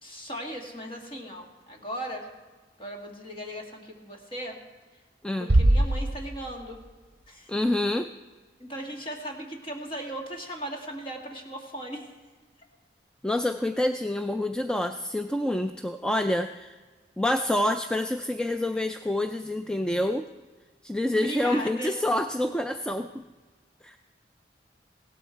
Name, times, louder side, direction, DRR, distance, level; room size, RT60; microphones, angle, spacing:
voice 1, 0.0-2.3 2.8-4.6 5.4-6.8 7.3-7.5 8.6-12.1 21.1-21.9, equal, 30° left, 1 dB, 2.1 m, -37 dB
Bass drum, 5.5-6.9, right 1 dB, 60° right, 0.7 m, -23 dB
voice 2, 7.5-8.1 13.2-16.8 17.2-20.2 20.8-23.2 23.8-24.0, left 1 dB, 5° left, 7 dB, 0.3 m, -27 dB
17.0 x 13.0 x 4.5 m, 1.4 s
head